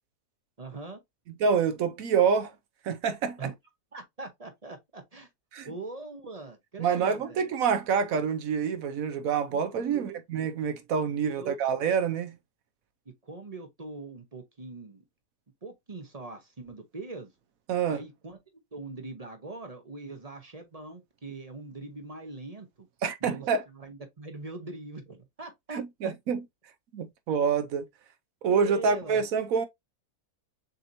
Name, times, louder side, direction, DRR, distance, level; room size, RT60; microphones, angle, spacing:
voice 1, 0.6-1.0 3.4-3.5 3.9-5.3 5.7-7.4 9.2-10.2 11.1-11.6 13.2-15.0 15.6-17.3 17.9-18.4 18.7-22.9 23.2-26.1 28.5-29.2, right 3 dB, 30° right, 0.8 m, -42 dB
voice 2, 1.4-2.5 2.8-3.5 5.5-5.7 6.8-12.3 17.7-18.0 23.0-23.6 25.7-26.4 26.9-27.9 28.4-29.7, right 6 dB, 70° right, 1.0 m, -27 dB
6.6 x 2.9 x 2.6 m
omnidirectional pair, 1.6 m